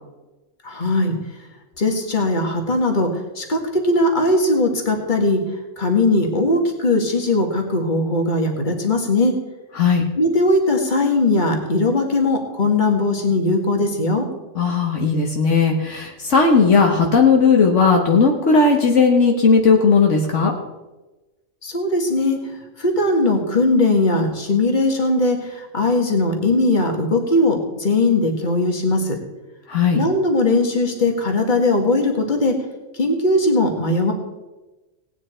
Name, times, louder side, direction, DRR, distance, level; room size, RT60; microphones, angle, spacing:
voice 1, 0.6-1.1 1.8-5.4 5.8-9.4 10.2-14.3 21.6-22.4 22.8-29.2 29.9-32.6 32.9-34.1, left 2 dB, 40° left, 3 dB, 2.0 m, -19 dB
voice 2, 14.5-20.5 29.7-30.0, left 4 dB, 70° left, 1 dB, 1.6 m, -16 dB
18.0 x 9.3 x 4.4 m, 1.1 s
omnidirectional pair, 1.3 m